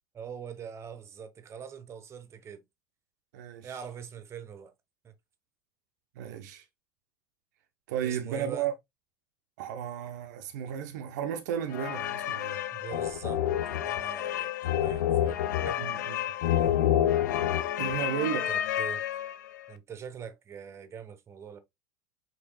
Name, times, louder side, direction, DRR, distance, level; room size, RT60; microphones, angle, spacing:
voice 1, 0.1-2.6 3.6-4.7 5.0-5.1 8.0-8.7 12.7-13.4 13.7-17.0 18.5-19.0 19.7-21.6, right 7 dB, 25° right, 0.7 m, -43 dB
voice 2, 3.3-3.7 6.2-6.6 7.9-8.7 9.6-12.6 15.8-16.2 17.8-18.5, right 9 dB, 55° right, 0.5 m, -34 dB
sound 1, 11.7-19.6, left 11 dB, 60° left, 0.4 m, -29 dB
5.1 x 3.0 x 3.0 m
figure-of-eight pair, 75°, 11 cm